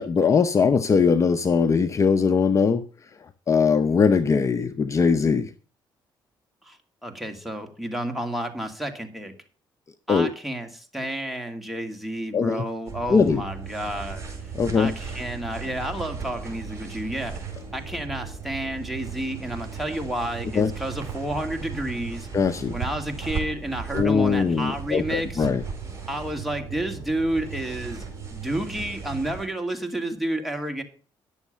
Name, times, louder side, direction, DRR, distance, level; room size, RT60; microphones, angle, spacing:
voice 1, 0.0-3.1 3.5-5.5 10.1-10.3 12.3-12.6 13.1-13.4 14.5-14.9 20.5-20.7 22.3-22.8 23.9-25.6, left 5 dB, 35° left, 0.7 m, -21 dB
voice 2, 6.6-9.3 10.1-14.3 14.7-17.5 17.7-22.3 22.7-25.5 26.1-28.0 28.3-30.8, right 1 dB, ahead, 2.5 m, -30 dB
Body movement, 12.9-29.5, right 6 dB, 35° right, 4.7 m, -36 dB
11.0 x 7.2 x 6.7 m
cardioid pair, 95°, 9 cm